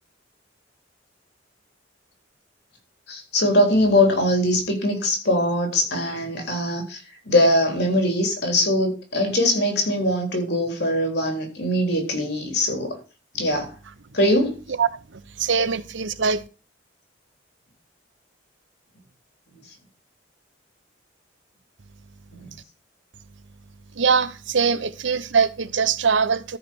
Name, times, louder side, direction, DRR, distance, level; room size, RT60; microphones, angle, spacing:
voice 1, 3.1-7.0 7.3-13.0 13.3-13.7 14.1-14.6 22.4-22.5, left 1 dB, 55° left, 3.5 m, -21 dB
voice 2, 14.8-16.4 24.0-26.6, right 5 dB, 75° right, 0.8 m, -22 dB
13.5 x 4.9 x 6.2 m
head